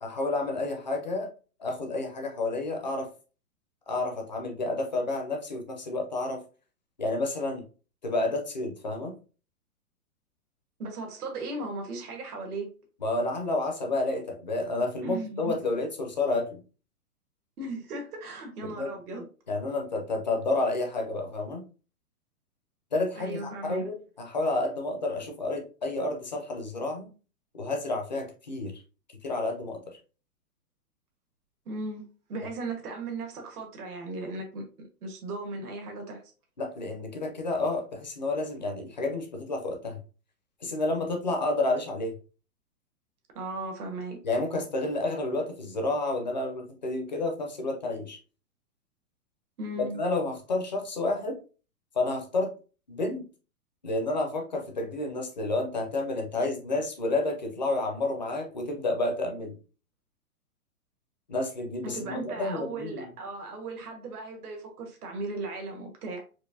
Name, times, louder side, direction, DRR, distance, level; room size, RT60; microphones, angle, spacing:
voice 1, 0.0-1.3 1.6-3.1 3.9-6.4 7.0-7.6 8.0-9.1 13.0-16.6 18.6-18.9 19.5-21.6 22.9-27.1 27.6-28.7 29.2-29.8 36.6-40.0 40.6-42.1 44.2-48.2 49.9-51.4 51.9-52.5 52.9-53.3 53.8-59.6 61.3-63.1, left 2 dB, 30° left, 0.4 m, -30 dB
voice 2, 10.8-12.7 15.0-15.5 17.6-19.3 23.2-23.8 31.6-36.2 43.3-44.2 49.6-50.0 61.8-66.2, right 2 dB, 70° right, 1.4 m, -37 dB
4.5 x 2.5 x 2.6 m
hypercardioid pair, 170°, 46 cm